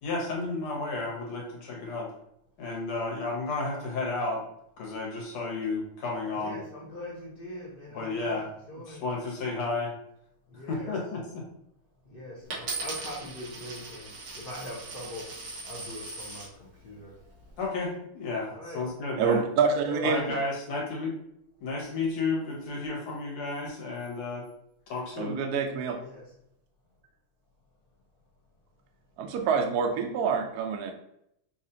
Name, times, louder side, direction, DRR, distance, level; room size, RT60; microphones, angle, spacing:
voice 1, 0.0-2.1 2.6-4.4 4.8-6.6 7.9-8.5 8.9-9.9 10.7-11.4 17.6-19.4 20.0-21.1 21.6-24.5 24.9-25.4, left 3 dB, 80° left, -2 dB, 2.1 m, -32 dB
voice 2, 6.3-9.0 10.5-10.9 12.0-14.1 14.3-15.3 15.6-17.1 18.5-18.8 19.8-20.4 26.0-26.3, left 1 dB, 55° left, -5 dB, 0.6 m, -41 dB
Coin (dropping), 12.5-16.5 17.2-17.6, right 3 dB, 55° right, 1.6 m, -39 dB
voice 3, 19.2-20.2 25.2-26.0 29.2-30.9, right 6 dB, 75° right, 3 dB, 0.8 m, -26 dB
5.9 x 2.5 x 2.8 m, 0.76 s
omnidirectional pair, 2.3 m